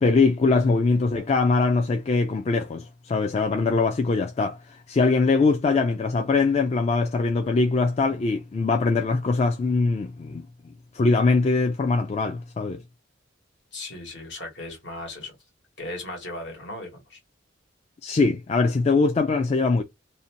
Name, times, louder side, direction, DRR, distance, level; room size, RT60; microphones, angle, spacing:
voice 1, 0.0-10.4 10.9-12.8 18.0-19.8, left 3 dB, 35° left, 0.3 m, -22 dB
voice 2, 13.7-15.4 15.8-17.2, left 2 dB, 65° left, 1.3 m, -37 dB
2.7 x 2.1 x 2.8 m
head